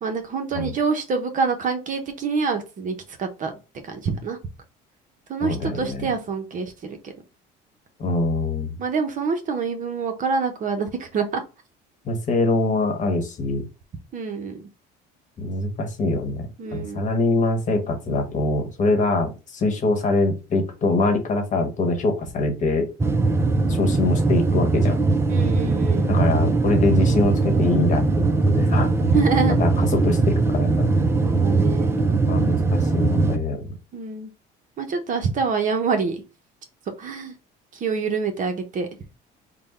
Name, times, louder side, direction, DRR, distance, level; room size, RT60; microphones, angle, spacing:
voice 1, 0.0-3.5 3.8-4.4 5.3-7.1 8.8-11.4 14.1-14.7 16.6-17.1 25.3-26.2 29.0-29.6 31.2-32.0 33.9-34.3 34.8-36.2 37.0-37.4 37.7-38.9, right 5 dB, 40° right, 6 dB, 0.8 m, -26 dB
voice 2, 5.4-6.1 8.0-8.8 12.0-13.7 15.4-22.9 23.7-25.0 26.1-28.9 29.6-31.0 32.0-33.7, left 2 dB, 40° left, 6 dB, 1.1 m, -24 dB
sound 1, 23.0-33.4, right 3 dB, 15° right, 0.4 m, -20 dB
3.5 x 2.2 x 4.1 m, 0.30 s
cardioid pair, 110°, 20 cm